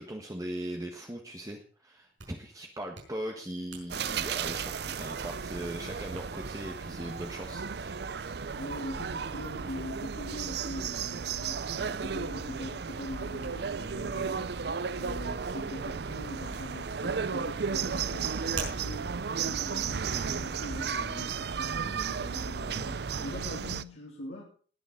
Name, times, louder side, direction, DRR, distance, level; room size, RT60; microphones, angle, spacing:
voice 1, 0.0-8.2, right 1 dB, 20° right, 2 dB, 1.5 m, -39 dB
Hands, 1.9-20.5, right 4 dB, 90° right, 5.4 m, -50 dB
sound 1, 3.9-23.8, right 6 dB, 60° right, 0.6 m, -34 dB
voice 2, 8.6-19.1 19.4-24.4, left 1 dB, 75° left, -3 dB, 3.0 m, -42 dB
19.5 x 7.1 x 5.2 m, 0.44 s
head